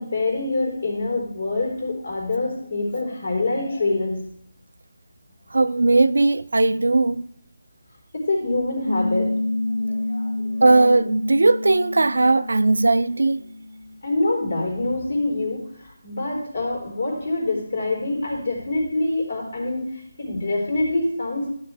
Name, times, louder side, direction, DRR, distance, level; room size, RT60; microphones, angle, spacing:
voice 1, 0.0-4.2 8.1-9.3 9.8-10.6 14.0-21.5, left 2 dB, 70° left, 3.8 m, -25 dB
voice 2, 5.5-7.3 10.6-13.4, right 2 dB, 75° right, 0.3 m, -18 dB
Piano, 8.9-14.0, left 2 dB, 45° left, 1.7 m, -28 dB
12.0 x 6.6 x 3.4 m
figure-of-eight pair, 160°, 0 cm